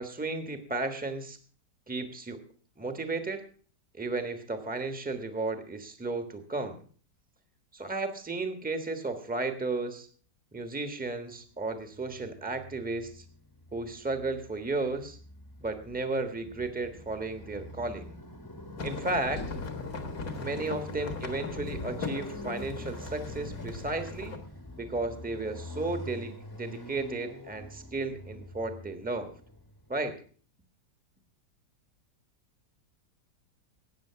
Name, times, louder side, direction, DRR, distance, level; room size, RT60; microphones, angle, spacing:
voice 1, 0.0-1.4 1.9-2.4 2.8-3.4 3.9-6.8 7.7-10.1 10.5-13.2 13.7-15.2 15.6-18.1 18.8-19.4 20.4-24.3 24.8-29.3 29.9-30.2, right 3 dB, 5° right, 7 dB, 1.2 m, -34 dB
Motorcycle, 11.8-30.0, left 1 dB, 15° left, 1.2 m, -45 dB
sound 1, 18.8-24.4, left 4 dB, 60° left, 2.0 m, -39 dB
13.5 x 9.1 x 5.7 m, 0.43 s
omnidirectional pair, 1.7 m